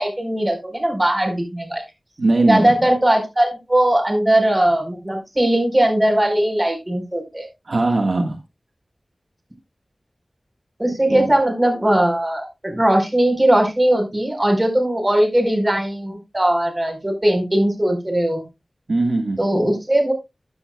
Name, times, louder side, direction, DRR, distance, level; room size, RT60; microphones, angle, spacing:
voice 1, 0.0-1.8 2.5-7.5 10.8-18.4 19.4-20.1, right 1 dB, 25° right, 3 dB, 4.5 m, -19 dB
voice 2, 2.2-2.9 7.6-8.4 11.1-11.3 18.9-19.4, right 2 dB, 70° right, 3 dB, 1.6 m, -20 dB
14.0 x 9.8 x 2.3 m, 0.23 s
wide cardioid pair, 55°, 0 cm